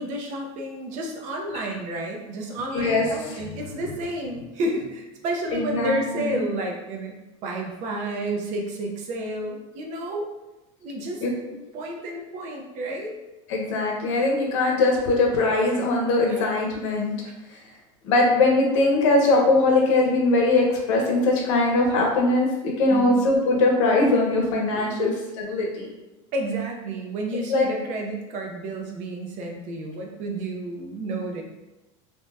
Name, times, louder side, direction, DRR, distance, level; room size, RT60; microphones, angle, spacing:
voice 1, 0.0-10.3 10.8-11.2 11.7-13.1 16.4-16.5 17.2-17.3 22.9-23.2 25.0-25.1 26.3-31.4, right 1 dB, 50° right, 1 dB, 0.6 m, -31 dB
voice 2, 2.7-3.6 5.5-6.4 11.2-11.3 13.5-17.2 18.0-25.1 25.5-25.9 27.5-27.7, left 2 dB, 80° left, -1 dB, 0.8 m, -21 dB
2.7 x 2.2 x 3.3 m, 1.0 s
supercardioid pair, 130°, 16 cm